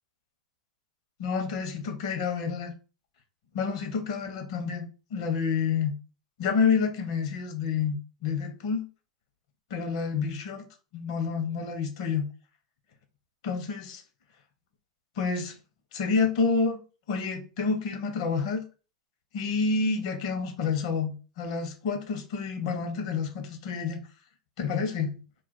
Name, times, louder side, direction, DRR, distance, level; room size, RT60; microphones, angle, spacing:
voice 1, 1.2-2.7 3.5-5.9 6.4-8.0 8.2-8.9 9.7-10.7 10.9-12.3 13.4-14.0 15.2-15.5 15.9-16.8 17.1-18.6 19.3-24.0 24.6-25.2, left 5 dB, 60° left, 0.8 m, -28 dB
2.4 x 2.3 x 3.9 m
hypercardioid pair, 110°, 4 cm